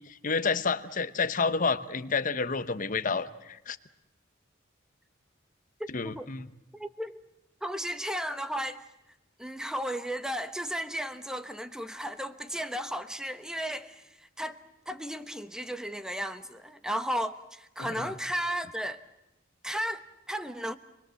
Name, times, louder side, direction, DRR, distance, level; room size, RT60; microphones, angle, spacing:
voice 1, 0.0-3.8 5.9-6.5 17.8-18.1, left 4 dB, 40° left, 1.0 m, -30 dB
voice 2, 5.8-6.3 6.7-7.2 7.6-8.9 9.4-19.0 19.6-20.8, equal, 5° right, 1.1 m, -34 dB
27.5 x 21.0 x 7.7 m
head